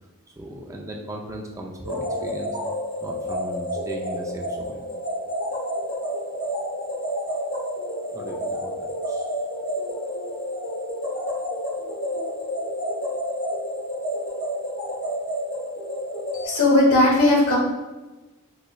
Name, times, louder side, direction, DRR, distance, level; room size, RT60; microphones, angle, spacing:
voice 1, 0.3-2.6 3.0-5.0 8.1-8.7 9.1-9.3, right 1 dB, 15° right, 0 dB, 0.3 m, -37 dB
sound 1, 1.8-16.5, equal, 70° left, 1.2 m, -29 dB
voice 2, 16.3-17.6, left 2 dB, 90° left, -3 dB, 1.1 m, -17 dB
4.1 x 2.9 x 2.2 m, 1.2 s
head